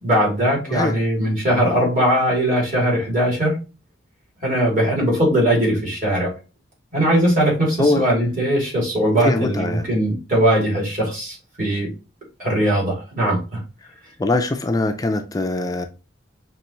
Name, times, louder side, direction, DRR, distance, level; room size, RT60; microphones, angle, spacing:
voice 1, 0.0-3.5 4.4-6.3 6.9-11.9 12.4-13.6, right 1 dB, 45° right, 2.8 m, -20 dB
voice 2, 0.7-1.0 7.8-8.0 9.2-9.8 13.8-13.9 14.2-15.9, left 2 dB, 20° left, 0.4 m, -22 dB
5.7 x 3.0 x 3.0 m
head